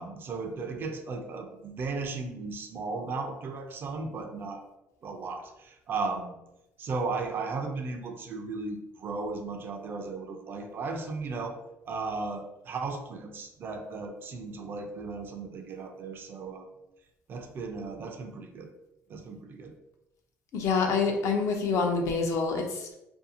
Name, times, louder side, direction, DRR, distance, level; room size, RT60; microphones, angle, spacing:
voice 1, 0.0-4.6 5.0-6.4 6.8-11.6 11.9-16.7 17.3-18.7 19.1-19.7, right 3 dB, 40° right, 4 dB, 0.4 m, -35 dB
voice 2, 20.5-22.9, left 4 dB, 60° left, 2 dB, 0.5 m, -27 dB
2.6 x 2.3 x 2.6 m, 0.89 s
cardioid pair, 140°, 6 cm